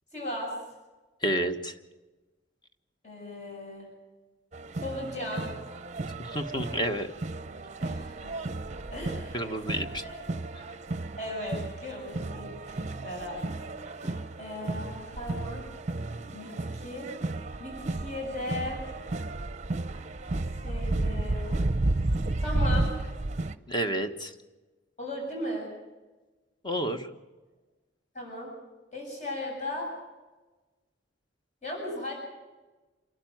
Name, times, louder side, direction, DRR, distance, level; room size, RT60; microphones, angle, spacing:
voice 1, 0.1-0.5 3.0-3.9 4.8-5.5 7.8-8.4 8.9-9.5 10.0-10.2 11.1-13.4 13.9-15.6 16.3-17.1 17.6-18.8 20.6-21.6 22.4-22.9 25.0-25.7 28.1-28.5 28.9-29.9 31.6-32.1, left 1 dB, 40° left, -2 dB, 7.6 m, -37 dB
voice 2, 1.2-1.7 6.3-7.1 9.3-10.0 10.6-10.7 14.0-14.1 23.7-24.3 26.6-27.1, equal, 25° left, 6 dB, 1.4 m, -30 dB
sound 1, 4.5-23.6, right 2 dB, 40° right, 0.7 m, -33 dB
27.5 x 12.0 x 9.3 m, 1.2 s
head